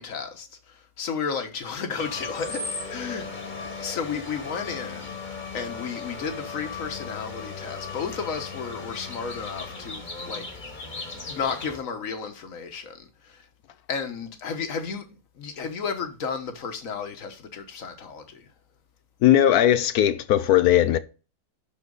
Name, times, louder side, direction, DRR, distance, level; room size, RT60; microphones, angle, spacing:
voice 1, 0.0-3.3 3.8-5.1 5.5-10.5 11.1-13.4 13.9-15.1 15.3-18.5, left 6 dB, 55° left, 1.6 m, -33 dB
sound 1, 2.0-11.8, left 4 dB, 30° left, 1.6 m, -37 dB
voice 2, 19.2-21.0, left 11 dB, 70° left, 1.0 m, -18 dB
11.5 x 4.3 x 4.0 m
omnidirectional pair, 1.8 m